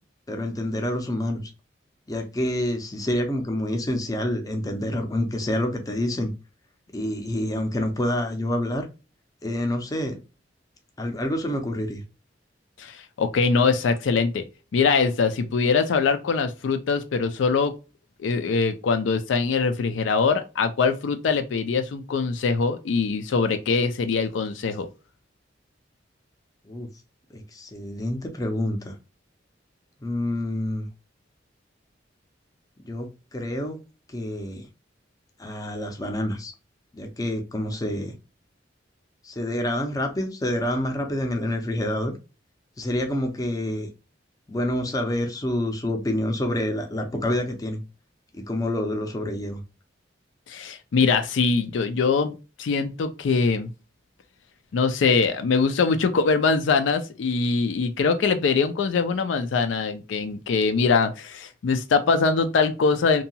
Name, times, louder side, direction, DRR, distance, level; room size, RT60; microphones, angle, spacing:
voice 1, 0.3-1.5 2.1-6.3 6.9-8.8 9.4-10.2 11.0-12.0 26.6-26.9 27.3-28.9 30.0-30.9 32.8-33.8 34.1-34.7 35.4-36.5 36.9-38.1 39.2-42.1 42.8-43.9 44.5-47.8 48.3-49.6, left 1 dB, 20° left, 0.5 m, -27 dB
voice 2, 12.8-14.4 14.7-17.7 18.2-24.9 50.5-53.7 54.7-63.2, left 4 dB, 80° left, 0.4 m, -23 dB
2.7 x 2.2 x 2.7 m
head